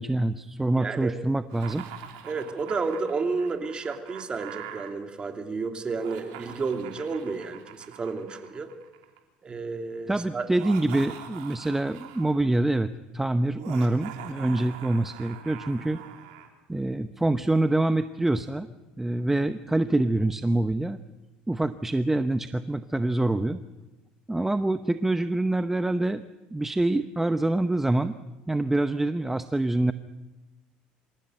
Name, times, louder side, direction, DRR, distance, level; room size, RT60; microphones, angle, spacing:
voice 1, 0.0-1.8 10.1-16.0 16.7-18.7 19.0-21.0 21.5-23.6 24.3-26.2 26.5-28.2 28.5-29.9, right 2 dB, 10° right, 10 dB, 0.8 m, -25 dB
voice 2, 0.8-1.2 2.2-8.7 9.4-10.5, right 4 dB, 30° right, 5 dB, 2.9 m, -31 dB
Laughter, 1.5-4.9 5.9-9.2 10.4-12.4 13.5-16.5, right 9 dB, 90° right, 3.4 m, -43 dB
26.0 x 15.0 x 9.1 m, 1.1 s
supercardioid pair, 100°, 3 cm